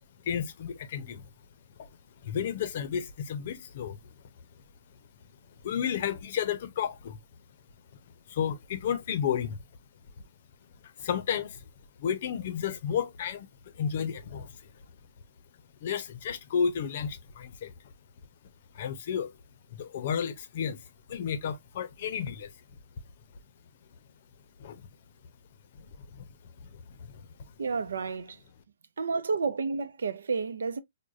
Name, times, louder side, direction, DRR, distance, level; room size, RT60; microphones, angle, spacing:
voice 1, 0.2-1.3 1.8-1.9 2.2-4.2 5.6-7.2 8.3-9.6 10.8-11.6 12.0-14.7 15.8-17.7 18.7-19.4 19.7-22.5 24.6-24.8 25.7-26.3 26.6-27.3, left 8 dB, 50° left, 0.6 m, -32 dB
voice 2, 27.6-28.4 29.0-30.8, right 4 dB, 85° right, 0.5 m, -31 dB
4.8 x 2.1 x 2.5 m
hypercardioid pair, 150°, 0 cm